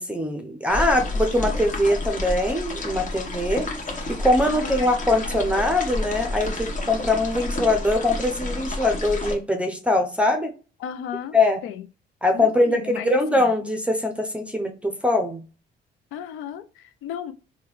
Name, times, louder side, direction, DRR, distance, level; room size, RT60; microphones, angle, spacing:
voice 1, 0.0-3.6 4.2-10.5 11.3-11.6 12.2-15.4, left 2 dB, 5° right, 0.6 m, -22 dB
voice 2, 0.7-1.0 4.4-4.9 5.3-5.6 10.8-11.3 11.6-11.9 12.3-13.5 16.1-17.3, left 9 dB, 90° left, 0.4 m, -35 dB
sound 1, 0.7-9.3, left 2 dB, 40° left, 1.1 m, -30 dB
3.6 x 2.2 x 3.0 m
cardioid pair, 90°, 20 cm